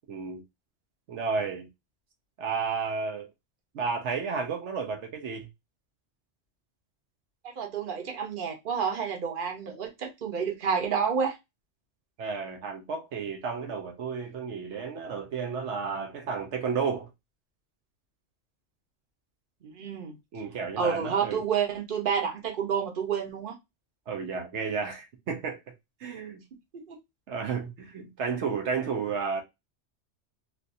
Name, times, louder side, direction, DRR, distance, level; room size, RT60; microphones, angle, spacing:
voice 1, 0.1-0.4 1.1-1.7 2.4-3.3 3.7-5.5 12.2-17.1 20.3-21.4 24.1-25.6 26.0-26.4 27.3-29.4, right 5 dB, 75° right, 1.0 m, -32 dB
voice 2, 7.4-11.4 19.6-20.1 20.8-23.5 26.7-27.0, right 6 dB, 50° right, 1.0 m, -29 dB
3.3 x 2.5 x 2.5 m
omnidirectional pair, 1.2 m